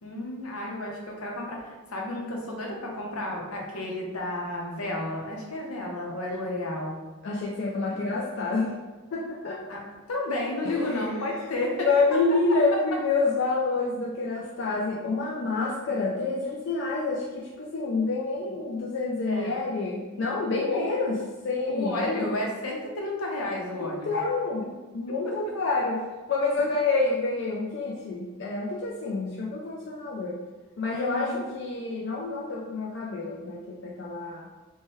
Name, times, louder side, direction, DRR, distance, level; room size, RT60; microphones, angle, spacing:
voice 1, 0.0-7.0 9.7-9.8 10.1-11.9 19.3-19.5 20.5-20.8 21.7-24.1 25.2-25.5 26.6-26.7 30.9-31.4, left 1 dB, 90° left, -1 dB, 0.7 m, -32 dB
voice 2, 7.2-8.7 9.1-9.6 10.6-11.2 11.8-22.4 23.7-24.7 24.9-26.0 26.3-30.4 30.8-34.5, left 3 dB, 55° left, -3 dB, 0.3 m, -28 dB
3.0 x 2.2 x 3.0 m, 1.3 s
head